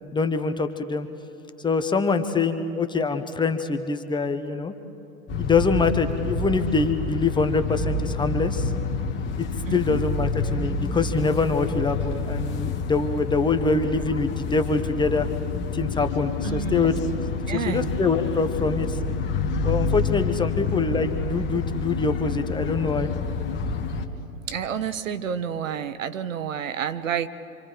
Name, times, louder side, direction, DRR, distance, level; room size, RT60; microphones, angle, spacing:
voice 1, 0.1-1.1 1.6-4.7 5.4-8.7 9.4-9.5 9.7-15.3 15.7-16.9 17.5-19.0 19.6-23.1, left 4 dB, 10° left, 8 dB, 0.9 m, -24 dB
sound 1, 5.3-24.1, left 4 dB, 25° left, 1.6 m, -28 dB
voice 2, 9.7-10.0 16.4-17.0 17.5-17.9 20.7-20.8 24.5-27.3, right 8 dB, 70° right, 12 dB, 1.3 m, -29 dB
27.0 x 26.5 x 5.0 m, 3.0 s
hypercardioid pair, 105°, 41 cm